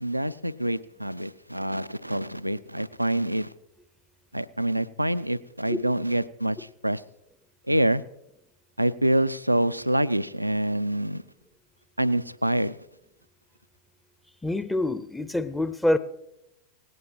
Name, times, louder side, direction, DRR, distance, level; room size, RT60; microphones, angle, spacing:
voice 1, 0.0-3.5 4.3-7.0 7.7-8.0 8.8-11.2 12.0-12.8, right 1 dB, 90° right, 0.4 m, -26 dB
voice 2, 14.4-16.0, left 1 dB, 5° left, 0.6 m, -26 dB
18.0 x 17.0 x 2.9 m
figure-of-eight pair, 90°, 0 cm